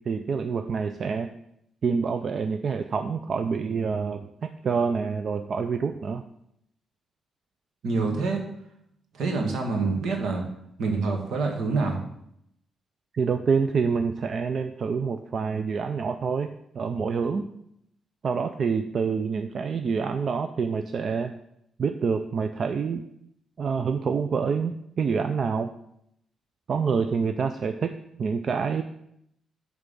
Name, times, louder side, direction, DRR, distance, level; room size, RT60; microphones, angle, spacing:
voice 1, 0.1-1.3 1.8-6.2 13.1-17.5 18.2-21.3 21.8-23.0 23.6-25.7 26.7-28.8, right 5 dB, 45° right, 8 dB, 0.4 m, -27 dB
voice 2, 7.8-8.4 9.1-10.4 10.8-12.0, right 4 dB, 70° right, 3 dB, 1.6 m, -26 dB
8.9 x 3.6 x 6.9 m, 0.75 s
wide cardioid pair, 160°, 0 cm